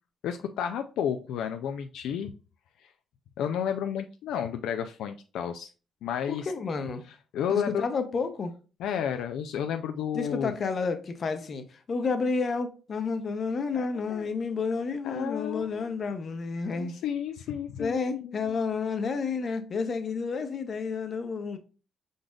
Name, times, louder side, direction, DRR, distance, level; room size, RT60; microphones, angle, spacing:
voice 1, 0.2-2.3 2.8-2.9 3.4-5.7 6.0-6.5 7.3-7.8 8.8-10.5 13.9-14.3 15.0-15.9 16.7-18.6, left 8 dB, 85° left, 0.3 m, -32 dB
voice 2, 6.3-7.0 7.5-8.5 10.1-17.0 17.8-21.6, left 4 dB, 50° left, 0.8 m, -30 dB
5.0 x 3.9 x 2.3 m
cardioid pair, 80°, 0 cm